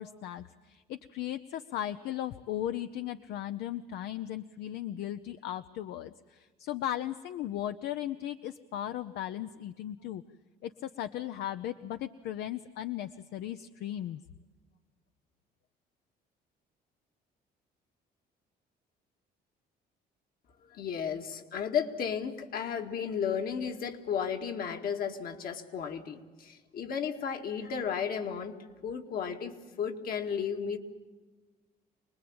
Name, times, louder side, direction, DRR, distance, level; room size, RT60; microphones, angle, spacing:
voice 1, 0.0-10.2 10.6-14.2, left 12 dB, 80° left, 10 dB, 0.7 m, -37 dB
voice 2, 20.7-30.8, left 7 dB, 60° left, 5 dB, 2.0 m, -34 dB
25.0 x 20.0 x 8.8 m, 1.3 s
cardioid pair, 110°, 17 cm